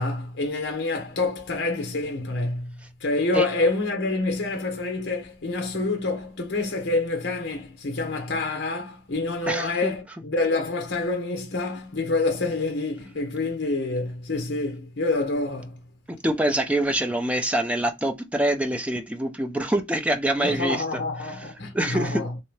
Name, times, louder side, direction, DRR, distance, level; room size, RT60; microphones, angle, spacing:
voice 1, 0.0-15.8 20.4-22.3, left 2 dB, 65° left, 0.9 m, -27 dB
voice 2, 9.5-9.9 16.1-21.0 21.7-22.4, right 1 dB, 5° right, 0.5 m, -25 dB
3.3 x 2.8 x 3.2 m
head